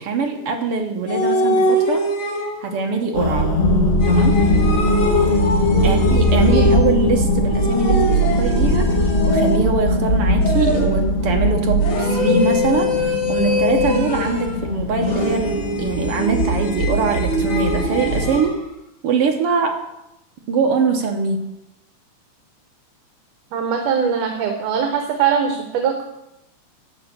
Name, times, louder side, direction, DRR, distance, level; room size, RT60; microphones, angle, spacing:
voice 1, 0.0-2.1 2.6-3.5 4.1-4.4 5.8-18.6 19.0-19.8 20.5-21.5, right 5 dB, 65° right, 4 dB, 1.5 m, -22 dB
sound 1, 1.1-2.8 4.0-7.1 7.5-9.9 10.4-11.1 11.8-14.6 15.0-18.5, left 1 dB, 70° left, 3.4 m, -24 dB
sound 2, 3.1-18.4, left 1 dB, 25° left, 1.5 m, -19 dB
voice 2, 5.7-6.2 6.5-6.6 23.5-26.0, right 7 dB, 80° right, 4 dB, 2.6 m, -22 dB
11.0 x 6.1 x 8.1 m, 0.88 s
omnidirectional pair, 3.6 m